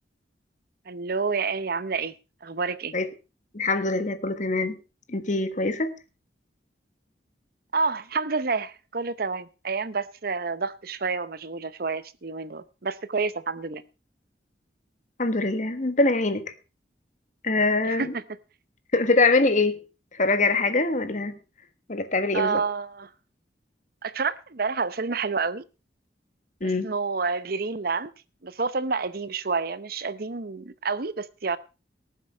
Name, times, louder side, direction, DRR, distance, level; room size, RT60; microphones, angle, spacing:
voice 1, 0.9-2.1 2.4-2.9 7.7-13.8 17.8-18.2 22.3-23.1 24.0-25.6 26.6-28.1 28.4-31.6, right 4 dB, 55° right, 0.8 m, -29 dB
voice 2, 3.5-4.8 5.1-5.9 15.2-16.4 17.4-18.1 18.9-19.8 20.2-21.3 21.9-22.6 26.6-26.9, left 3 dB, 45° left, 1.5 m, -23 dB
18.5 x 7.5 x 5.4 m
head